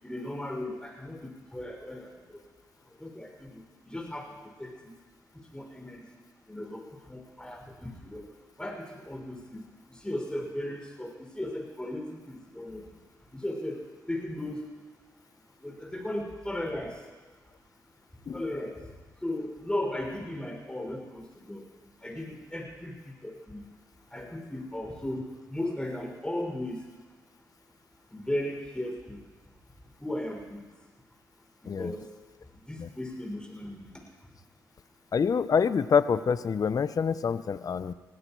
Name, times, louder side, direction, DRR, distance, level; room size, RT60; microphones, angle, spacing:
voice 1, 0.0-2.4 3.0-4.9 5.3-6.0 6.5-8.3 8.6-12.9 13.3-13.8 14.1-14.6 15.6-17.0 18.3-18.9 19.2-21.7 22.0-23.7 24.1-26.9 28.1-29.2 30.0-30.6 31.6-32.0 32.5-33.9, left 1 dB, 10° left, 0 dB, 5.9 m, -36 dB
voice 2, 35.1-37.9, left 6 dB, 50° left, 15 dB, 0.6 m, -26 dB
20.5 x 17.0 x 3.1 m, 1.3 s
supercardioid pair, 45°, 8 cm